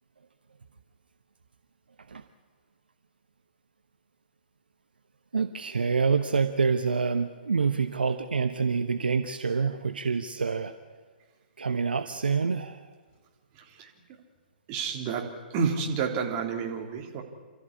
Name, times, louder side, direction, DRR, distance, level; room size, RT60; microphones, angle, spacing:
voice 1, 5.3-10.7 11.6-12.8, right 5 dB, 70° right, 9 dB, 1.0 m, -27 dB
voice 2, 14.7-17.2, right 5 dB, 30° right, 1 dB, 3.4 m, -30 dB
28.0 x 13.5 x 9.9 m, 1.5 s
figure-of-eight pair, 120°, 5 cm